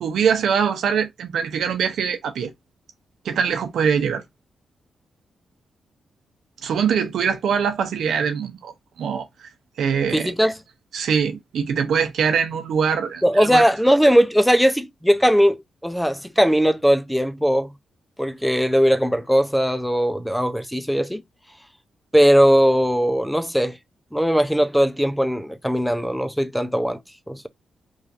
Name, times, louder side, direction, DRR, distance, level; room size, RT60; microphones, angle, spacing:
voice 1, 0.0-2.5 3.2-4.2 6.6-8.7 9.0-9.5 9.8-10.3 10.9-13.6, right 7 dB, 80° right, 0.7 m, -23 dB
voice 2, 10.1-10.6 13.2-15.6 15.8-17.7 18.2-21.2 22.1-23.8 24.1-27.0 27.3-27.5, equal, ahead, 0.5 m, -19 dB
3.2 x 2.6 x 2.5 m
cardioid pair, 70°, 0 cm